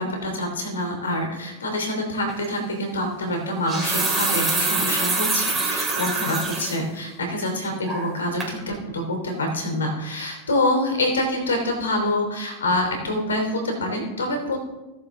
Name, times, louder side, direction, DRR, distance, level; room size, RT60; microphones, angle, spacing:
voice 1, 0.0-14.6, left 1 dB, 85° left, 3 dB, 3.1 m, -26 dB
sound 1, 2.3-2.5 3.5-6.8 7.2-7.3 7.8-8.2 8.4-8.5, right 3 dB, 10° right, 4.0 m, -25 dB
17.5 x 7.1 x 3.7 m, 1.1 s
hypercardioid pair, 95°, 0 cm